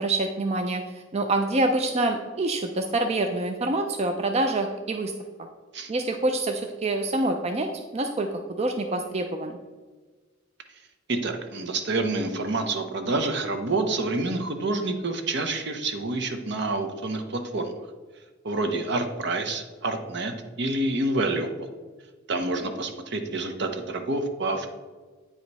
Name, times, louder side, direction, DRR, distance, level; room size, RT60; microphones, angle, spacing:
voice 1, 0.0-5.1 5.4-5.5 5.9-8.3 8.6-9.6, right 2 dB, 35° right, 5 dB, 0.4 m, -26 dB
voice 2, 11.1-17.7 18.4-21.7 22.3-24.7, right 2 dB, 60° right, 7 dB, 0.8 m, -28 dB
8.9 x 5.0 x 4.1 m, 1.3 s
head